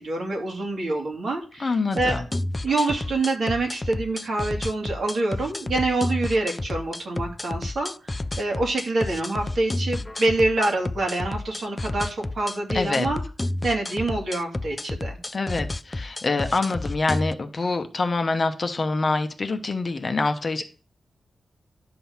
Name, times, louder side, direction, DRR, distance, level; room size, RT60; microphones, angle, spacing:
voice 1, 0.0-2.2 2.6-13.2 13.6-15.2, right 2 dB, 50° right, 0 dB, 2.6 m, -26 dB
voice 2, 1.6-2.2 12.7-13.1 15.3-20.6, left 3 dB, 35° left, 7 dB, 1.0 m, -25 dB
sound 1, 1.9-17.3, left 2 dB, 20° left, 0.3 m, -31 dB
11.5 x 3.9 x 7.2 m, 0.38 s
wide cardioid pair, 130°, 0 cm